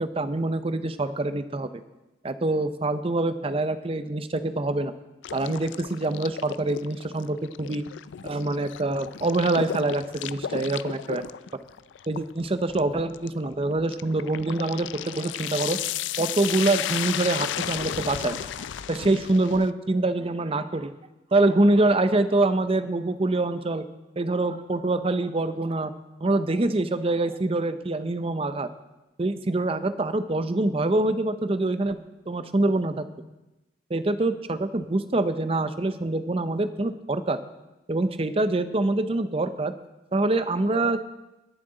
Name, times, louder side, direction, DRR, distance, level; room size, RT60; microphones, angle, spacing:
voice 1, 0.0-1.7 2.2-4.9 5.3-7.8 8.2-11.3 12.1-15.8 16.2-20.9 21.3-23.8 24.2-25.9 26.2-28.7 29.2-33.0 33.9-37.4 37.9-39.7 40.1-41.0, right 2 dB, 30° right, 11 dB, 0.6 m, -25 dB
sound 1, 5.2-19.7, left 10 dB, 80° left, 0.4 m, -34 dB
20.5 x 7.5 x 3.9 m, 1.0 s
head